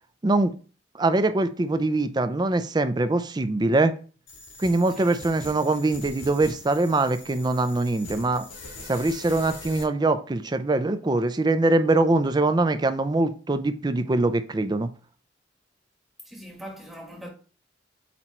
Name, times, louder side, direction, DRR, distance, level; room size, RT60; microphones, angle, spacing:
voice 1, 0.2-0.5 0.9-3.9 4.6-8.5 8.9-14.9, right 2 dB, 20° right, 0.4 m, -23 dB
sound 1, 4.3-9.8, left 2 dB, 85° left, 1.4 m, -42 dB
voice 2, 16.2-17.3, equal, ahead, 1.2 m, -41 dB
8.1 x 3.0 x 4.4 m
head